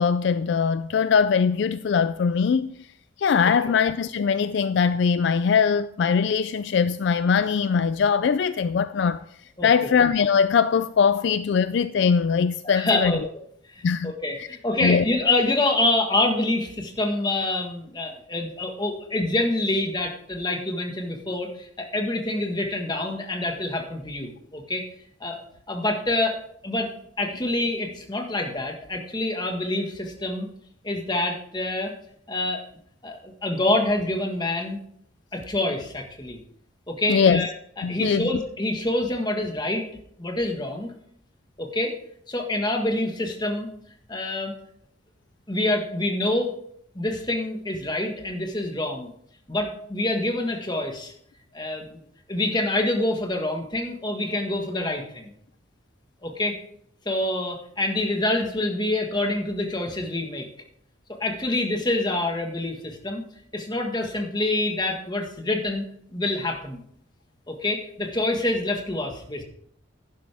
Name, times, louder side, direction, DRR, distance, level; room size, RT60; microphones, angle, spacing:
voice 1, 0.0-2.8 3.2-9.2 9.6-13.1 13.8-14.1 14.4-14.5 14.8-15.0 37.1-37.5 37.8-38.3, left 6 dB, 60° left, 0.3 m, -21 dB
voice 2, 12.6-13.2 13.7-24.8 25.2-26.4 26.6-30.5 30.8-31.9 32.3-32.6 33.0-34.8 35.3-36.4 36.9-37.5 37.8-39.9 40.2-40.9 41.6-42.0 42.3-43.7 44.1-44.5 45.5-46.5 46.9-49.1 49.5-51.1 51.5-52.0 52.3-55.3 56.2-56.6 57.0-60.5 61.2-63.2 63.5-65.8 66.1-66.8 67.5-69.4, left 2 dB, 20° left, 1.5 m, -26 dB
11.5 x 10.5 x 3.5 m
head